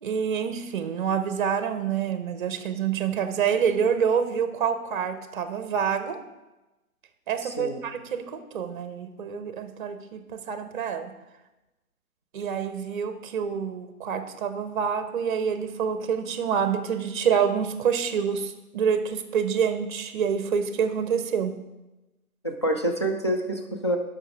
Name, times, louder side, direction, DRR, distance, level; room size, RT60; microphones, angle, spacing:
voice 1, 0.0-6.2 7.3-11.1 12.3-21.5, right 7 dB, 35° right, 10 dB, 0.7 m, -27 dB
voice 2, 7.4-7.8 22.4-24.0, right 1 dB, 20° left, 2 dB, 0.4 m, -27 dB
12.0 x 5.9 x 3.4 m, 1.0 s
figure-of-eight pair, 135°, 44 cm